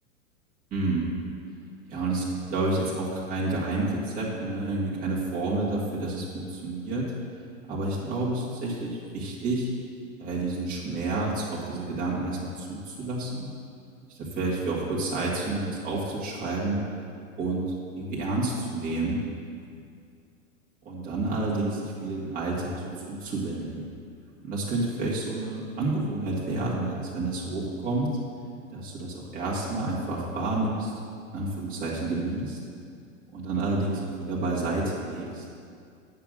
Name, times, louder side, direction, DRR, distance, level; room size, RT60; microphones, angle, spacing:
voice 1, 0.7-1.1 1.9-7.1 7.7-9.7 10.2-13.5 14.1-16.8 17.4-17.6 18.0-19.2 20.8-23.9 24.4-28.1 28.7-30.9 31.3-32.6 33.3-35.4, right 2 dB, 20° right, -6 dB, 1.8 m, -29 dB
8.5 x 5.7 x 6.6 m, 2.3 s
hypercardioid pair, 125°, 41 cm